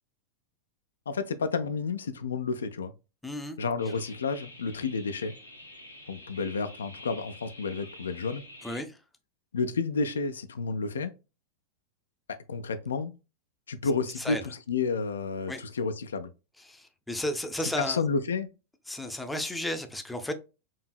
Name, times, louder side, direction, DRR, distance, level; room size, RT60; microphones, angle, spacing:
voice 1, 1.1-2.9 3.6-5.3 6.1-8.4 9.5-11.1 12.3-13.1 13.7-16.3 17.8-18.5, left 4 dB, 70° left, 0.3 m, -31 dB
voice 2, 3.2-3.6 8.6-9.0 14.2-14.4 15.5-15.6 16.7-18.0 18.9-20.3, left 1 dB, 5° left, 0.5 m, -33 dB
sound 1, 3.8-8.8, left 1 dB, 90° left, 1.0 m, -48 dB
4.5 x 2.7 x 2.3 m
figure-of-eight pair, 90°, 0 cm